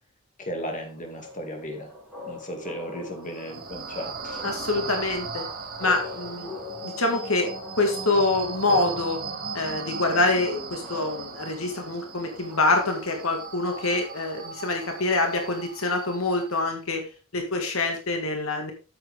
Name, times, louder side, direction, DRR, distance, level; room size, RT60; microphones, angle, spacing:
voice 1, 0.4-1.9 2.2-4.6, equal, 40° left, 3 dB, 2.5 m, -35 dB
sound 1, 0.6-15.6, left 2 dB, 5° left, 5.9 m, -42 dB
sound 2, 3.2-16.6, right 5 dB, 45° right, 1.9 m, -38 dB
voice 2, 4.4-5.5 5.8-6.6 6.8-7.5 7.8-9.2 9.5-18.7, left 2 dB, 75° left, 4 dB, 2.0 m, -25 dB
8.9 x 7.9 x 3.6 m, 0.32 s
head